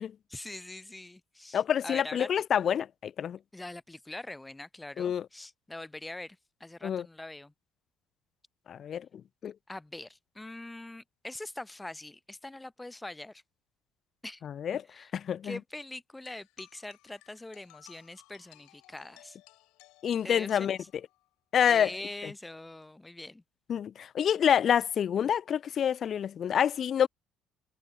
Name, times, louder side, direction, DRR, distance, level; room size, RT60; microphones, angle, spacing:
voice 1, 0.3-2.3 3.5-7.5 9.7-13.4 14.2-14.4 14.9-15.1 15.4-19.4 20.2-20.9 21.6-23.4, left 2 dB, 10° left, 0.7 m, -43 dB
voice 2, 1.5-3.4 5.0-5.3 6.8-7.1 8.7-9.1 9.4-9.5 14.4-14.8 15.2-15.6 20.0-20.8 21.5-21.9 23.7-27.1, left 8 dB, 45° left, 0.3 m, -27 dB
sound 1, 16.2-21.3, left 22 dB, 60° left, 2.4 m, -58 dB
figure-of-eight pair, 55°, 0 cm